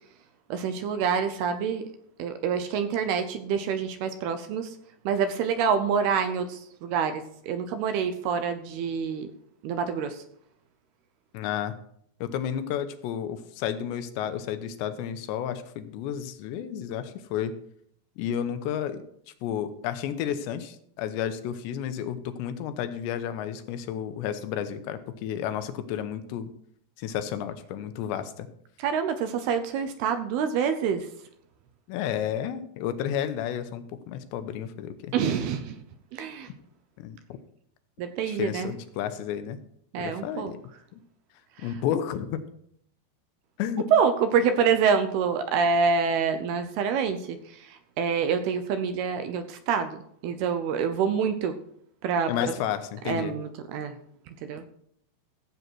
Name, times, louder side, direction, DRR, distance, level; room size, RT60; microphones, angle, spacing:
voice 1, 0.5-1.8 2.2-4.8 5.1-9.3 9.6-10.2 28.8-31.1 35.1-35.8 36.1-36.5 38.0-38.7 39.9-40.5 41.6-41.8 43.9-50.0 50.2-51.6 52.0-52.3 53.1-54.0 54.3-54.6, right 6 dB, 75° right, 9 dB, 2.6 m, -26 dB
voice 2, 11.3-11.7 12.2-17.5 18.2-19.0 19.4-26.5 27.0-28.5 31.9-35.1 37.0-37.2 38.3-39.6 40.0-40.6 40.9-41.0 41.6-42.4 43.6-43.8 52.3-53.4, left 9 dB, 90° left, 10 dB, 3.1 m, -31 dB
15.0 x 8.0 x 4.6 m, 0.69 s
omnidirectional pair, 4.9 m